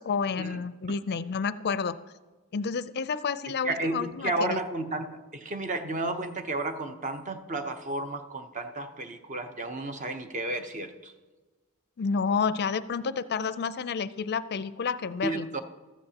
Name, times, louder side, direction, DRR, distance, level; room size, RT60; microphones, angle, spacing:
voice 1, 0.0-2.0 2.5-4.6 12.0-15.5, left 5 dB, 45° left, 15 dB, 0.4 m, -30 dB
voice 2, 3.6-11.1 15.2-15.6, right 2 dB, 35° right, 7 dB, 0.8 m, -32 dB
14.5 x 13.5 x 2.9 m, 1.3 s
head